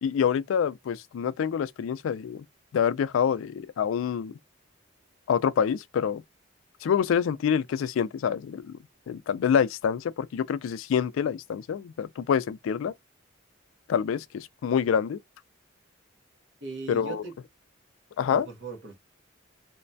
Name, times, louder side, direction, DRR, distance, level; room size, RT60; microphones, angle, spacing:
voice 1, 0.0-2.4 2.7-4.3 5.3-6.2 6.8-8.8 9.1-12.9 13.9-15.2 16.9-17.2 18.2-18.5, left 7 dB, 85° left, 0.3 m, -26 dB
voice 2, 16.6-17.4 18.2-19.0, right 4 dB, 65° right, 1.0 m, -38 dB
3.0 x 2.2 x 2.6 m
head